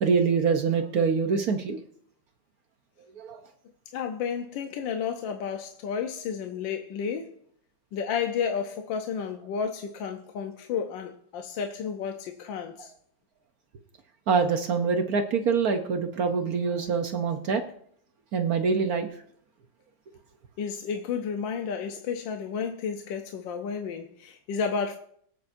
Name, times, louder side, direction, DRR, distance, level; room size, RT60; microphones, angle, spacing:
voice 1, 0.0-1.8 3.2-3.4 12.8-12.9 14.3-17.6 18.3-19.1, right 5 dB, 60° right, 1.2 m, -25 dB
voice 2, 3.9-7.4 7.9-12.9 20.6-25.0, left 6 dB, 80° left, 1.5 m, -32 dB
23.0 x 8.5 x 2.6 m
omnidirectional pair, 2.0 m